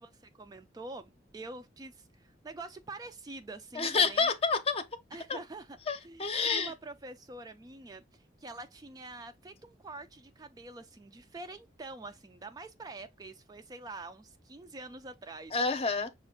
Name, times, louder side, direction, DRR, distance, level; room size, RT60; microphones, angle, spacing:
voice 1, 0.0-4.3 5.1-5.8 6.0-15.6, right 2 dB, 20° right, 0.3 m, -46 dB
voice 2, 3.7-4.8 5.3-5.4 5.9-6.7 15.5-16.1, left 4 dB, 35° left, 0.7 m, -28 dB
6.0 x 2.4 x 3.6 m
head